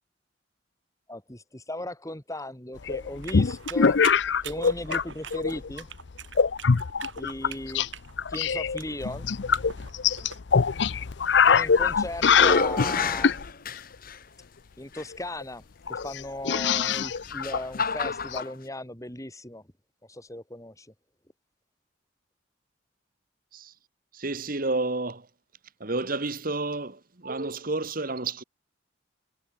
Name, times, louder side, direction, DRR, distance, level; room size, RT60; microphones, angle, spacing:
voice 1, 1.1-4.0 4.4-5.9 7.2-7.9 8.3-9.3 11.5-13.3 14.8-19.6 20.1-20.9, left 1 dB, 15° left, 4.5 m, -37 dB
sound 1, 2.9-5.0 5.3-5.8 6.4-7.9 8.2-13.5 15.1-15.2 15.4-15.5 15.9-18.4, left 6 dB, 65° left, 0.6 m, -23 dB
sound 2, 3.2-10.4, right 8 dB, 75° right, 3.1 m, -42 dB
sound 3, 11.5-12.0 12.3-14.2 15.0-15.1 16.8-18.5, left 4 dB, 50° left, 2.4 m, -29 dB
voice 2, 24.1-25.3 25.8-28.4, right 2 dB, 50° right, 1.6 m, -30 dB
head